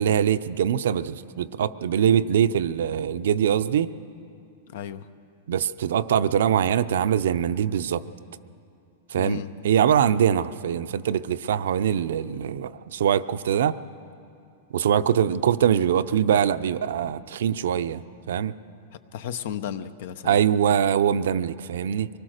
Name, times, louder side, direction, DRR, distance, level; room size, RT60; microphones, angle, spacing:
voice 1, 0.0-3.9 5.5-8.0 9.1-9.4 9.6-13.8 14.7-18.5 20.2-22.1, right 9 dB, 80° right, 12 dB, 0.7 m, -23 dB
voice 2, 4.7-5.1 9.1-9.5 19.1-20.4, left 9 dB, 60° left, 13 dB, 0.9 m, -34 dB
24.0 x 20.0 x 6.6 m, 2.6 s
supercardioid pair, 155°, 0 cm